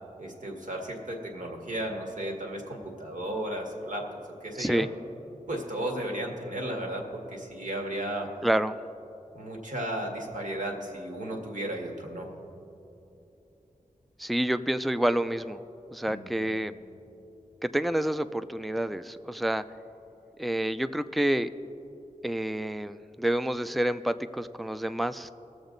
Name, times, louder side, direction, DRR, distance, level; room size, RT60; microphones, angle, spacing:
voice 1, 0.2-4.1 4.4-4.8 5.5-8.3 9.3-12.3 16.1-16.5, right 1 dB, 65° right, 0 dB, 1.9 m, -34 dB
voice 2, 8.4-8.7 14.2-15.6 15.9-16.7 17.6-19.6 20.4-21.5 22.2-25.3, right 1 dB, ahead, 12 dB, 0.4 m, -28 dB
19.5 x 7.1 x 3.9 m, 2.9 s
cardioid pair, 45°, 14 cm